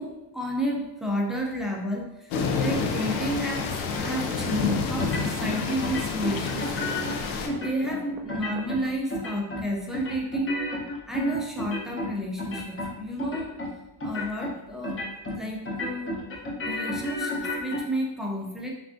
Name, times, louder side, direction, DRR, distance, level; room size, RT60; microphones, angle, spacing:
voice 1, 0.0-10.7 11.1-13.6 14.0-15.0 15.3-16.2 16.7-18.7, equal, ahead, -1 dB, 0.3 m, -31 dB
sound 1, 2.3-7.5, left 5 dB, 75° left, 0.6 m, -29 dB
sound 2, 3.1-8.9, right 6 dB, 80° right, 0.6 m, -45 dB
sound 3, 5.0-5.5 5.8-7.1 7.5-8.0 8.3-8.8 9.1-9.7 9.9-12.1 12.4-12.9 13.2-13.7 14.0-14.5 14.8-15.4 15.6-17.8, left 1 dB, 25° left, 0.7 m, -32 dB
3.4 x 2.3 x 2.5 m, 0.92 s
cardioid pair, 90°, 49 cm